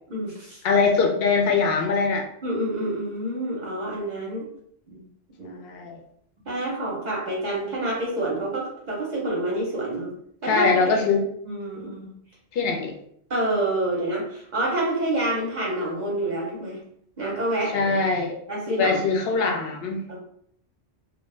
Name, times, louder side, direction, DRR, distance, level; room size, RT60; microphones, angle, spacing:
voice 1, 0.1-0.6 2.4-4.5 4.9-5.0 5.4-5.6 6.4-10.1 10.4-11.0 11.4-12.1 13.3-16.8 17.2-18.0 18.5-19.1 20.1-20.2, right 1 dB, 50° right, -4 dB, 0.6 m, -28 dB
voice 2, 0.6-2.3 5.6-6.0 10.5-11.2 12.5-12.9 17.7-18.3 18.8-20.2, left 4 dB, 65° left, 2 dB, 0.7 m, -22 dB
2.1 x 2.1 x 3.1 m, 0.68 s
omnidirectional pair, 1.2 m